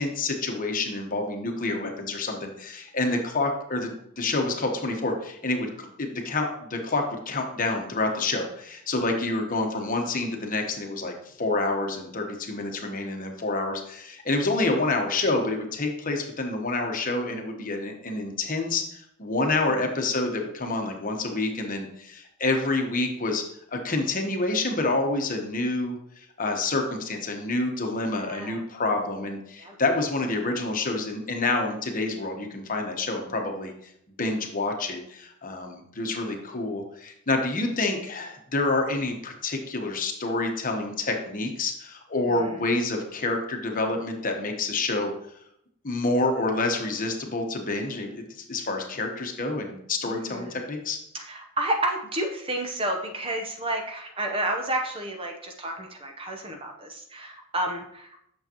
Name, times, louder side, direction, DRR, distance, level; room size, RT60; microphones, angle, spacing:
voice 1, 0.0-23.4 23.7-33.7 34.2-45.1 45.8-51.0, left 2 dB, 40° left, 3 dB, 1.1 m, -28 dB
voice 2, 28.1-28.6 29.6-29.8 42.2-42.6 50.0-50.6 51.1-58.3, right 1 dB, 25° right, 3 dB, 0.8 m, -31 dB
8.7 x 6.4 x 2.9 m, 0.74 s
head